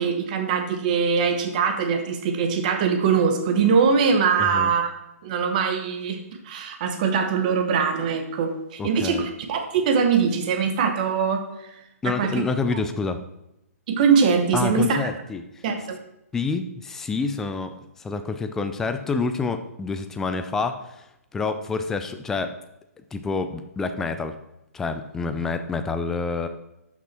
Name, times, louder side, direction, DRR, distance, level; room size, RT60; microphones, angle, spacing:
voice 1, 0.0-4.9 5.2-11.7 12.0-12.4 13.9-15.0 15.6-16.0, right 6 dB, 30° right, 6 dB, 1.2 m, -22 dB
voice 2, 4.4-4.7 8.8-9.2 12.0-13.2 14.5-15.4 16.3-21.0 21.3-22.5 23.1-24.4 24.7-26.5, left 4 dB, 5° left, 8 dB, 0.4 m, -28 dB
12.0 x 6.0 x 4.4 m, 0.89 s
hypercardioid pair, 165°, 8 cm